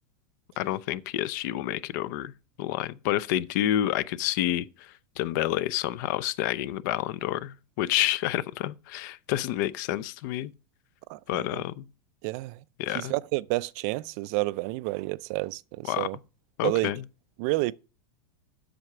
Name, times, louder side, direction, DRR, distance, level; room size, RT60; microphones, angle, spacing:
voice 1, 0.6-2.3 2.6-10.5 11.3-11.9 12.8-13.1 15.9-16.1 16.6-17.0, left 13 dB, 55° left, 0.5 m, -29 dB
voice 2, 11.1-11.6 12.2-12.6 12.9-16.2 16.6-16.9 17.4-17.7, right 22 dB, 45° right, 0.4 m, -30 dB
7.7 x 6.6 x 5.9 m
supercardioid pair, 155°, 12 cm